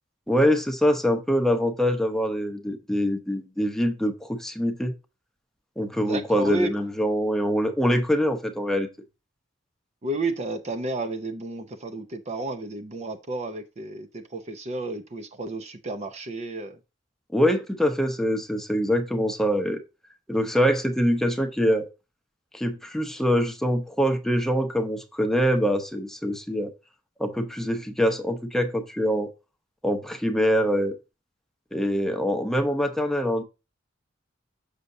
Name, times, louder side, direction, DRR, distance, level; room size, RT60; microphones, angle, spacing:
voice 1, 0.3-4.9 5.8-8.9 17.3-19.8 20.3-21.9 22.5-26.7 27.2-29.3 29.8-31.0 31.7-33.4, equal, ahead, 0.8 m, -24 dB
voice 2, 6.0-6.7 10.0-16.8, right 2 dB, 35° right, 0.6 m, -31 dB
6.6 x 6.4 x 2.6 m
head